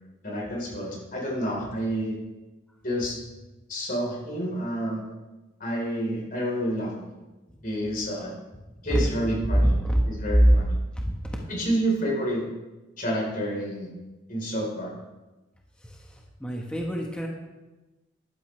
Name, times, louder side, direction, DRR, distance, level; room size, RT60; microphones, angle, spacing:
voice 1, 0.2-2.2 2.8-3.2 3.7-5.0 5.6-6.9 7.6-8.3 8.8-9.7 10.1-10.8 11.5-12.5 13.0-13.9 14.3-14.9, equal, 45° left, -2 dB, 4.1 m, -29 dB
voice 2, 9.5-10.0 10.3-10.6 11.0-11.1 15.8-16.0 16.4-17.3, equal, 5° left, -1 dB, 1.3 m, -21 dB
14.0 x 12.0 x 3.3 m, 1.1 s
head